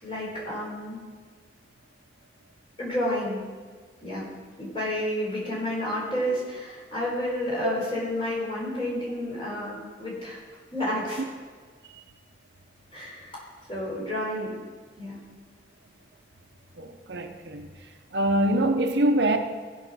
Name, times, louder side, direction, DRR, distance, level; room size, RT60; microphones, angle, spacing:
voice 1, 0.0-1.0 2.8-3.4 4.0-4.3 4.6-10.4 10.7-11.2 12.9-13.4 13.7-14.5 15.0-15.2, left 1 dB, 30° left, 4.2 m, -30 dB
voice 2, 16.8-17.7 18.1-19.4, right 1 dB, 70° right, 0.8 m, -24 dB
15.0 x 5.7 x 6.2 m
head